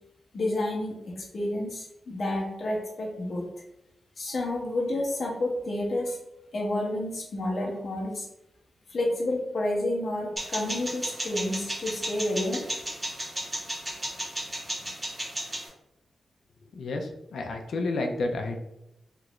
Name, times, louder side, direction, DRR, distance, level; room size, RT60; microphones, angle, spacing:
voice 1, 0.3-3.4 4.2-6.2 6.5-8.2 8.9-12.6, left 1 dB, 45° left, -2 dB, 0.7 m, -30 dB
sound 1, 10.4-15.7, right 1 dB, 20° right, 1.1 m, -34 dB
voice 2, 16.7-18.6, left 2 dB, 75° left, 3 dB, 0.4 m, -30 dB
3.0 x 2.4 x 3.0 m, 0.85 s
wide cardioid pair, 170°, 0 cm